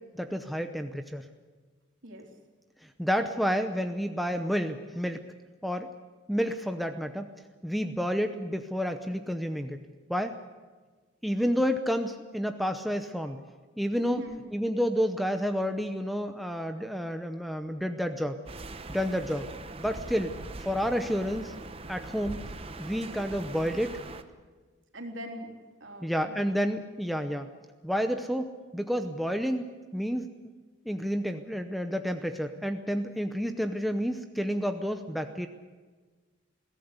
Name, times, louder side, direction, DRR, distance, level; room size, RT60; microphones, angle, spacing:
voice 1, 0.1-1.3 2.8-5.2 5.6-5.9 6.3-7.3 7.6-9.8 10.1-10.4 11.2-13.4 13.8-14.2 14.5-18.4 18.9-19.5 19.8-20.3 20.6-21.5 21.9-22.4 22.8-24.0 26.0-27.5 27.8-30.3 30.9-35.5, equal, ahead, 6 dB, 0.7 m, -30 dB
voice 2, 14.0-14.4 24.9-25.5 25.8-26.7, equal, 65° right, 3 dB, 3.5 m, -41 dB
sound 1, 18.5-24.2, right 2 dB, 25° right, 0.9 m, -42 dB
22.0 x 16.5 x 8.2 m, 1.4 s
head